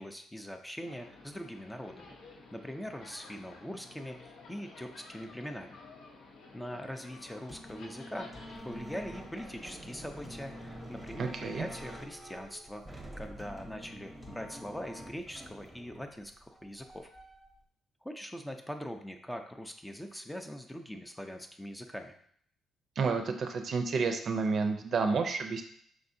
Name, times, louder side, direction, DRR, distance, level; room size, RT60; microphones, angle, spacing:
voice 1, 0.0-5.8 6.5-17.1 18.0-22.1, equal, 5° left, 5 dB, 0.5 m, -42 dB
sound 1, 0.8-12.0, left 3 dB, 80° left, 0.8 m, -53 dB
sound 2, 7.5-15.5, equal, 35° left, 0.8 m, -49 dB
sound 3, 8.5-17.5, right 1 dB, 20° right, 0.8 m, -49 dB
voice 2, 11.2-11.6 23.0-25.6, right 4 dB, 55° right, 6 dB, 0.5 m, -30 dB
4.9 x 3.5 x 2.6 m, 0.64 s
cardioid pair, 90°, 0 cm